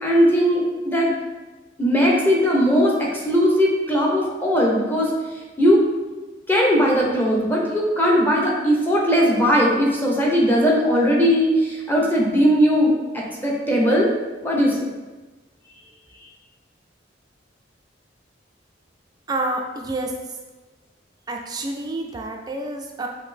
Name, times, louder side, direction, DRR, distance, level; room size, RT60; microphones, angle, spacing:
voice 1, 0.0-1.1 1.8-5.1 5.6-5.8 6.5-14.1 14.4-14.8, equal, 10° left, -3 dB, 0.8 m, -19 dB
voice 2, 19.3-20.1 21.3-23.1, right 2 dB, 20° right, 2 dB, 0.3 m, -28 dB
5.8 x 2.7 x 3.4 m, 1.2 s
head